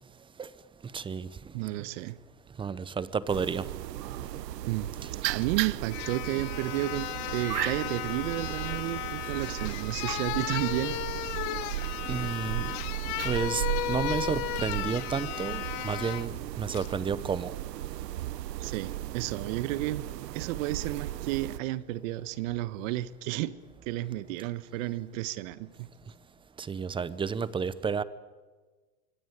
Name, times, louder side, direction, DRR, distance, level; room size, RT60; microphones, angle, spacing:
voice 1, 0.9-1.3 2.6-3.7 12.1-12.7 13.2-17.5 26.6-28.0, right 6 dB, 10° right, 17 dB, 0.7 m, -31 dB
voice 2, 1.5-2.2 4.7-4.9 5.3-11.6 18.6-20.1 20.3-23.5 23.9-25.9, right 16 dB, 55° right, 16 dB, 1.5 m, -32 dB
sound 1, 3.3-21.6, right 14 dB, 85° right, 0.9 m, -36 dB
sound 2, 5.4-5.5 5.9-16.3 16.7-16.9, left 16 dB, 45° left, 1.3 m, -35 dB
25.0 x 22.5 x 9.1 m, 1.3 s
supercardioid pair, 135°, 48 cm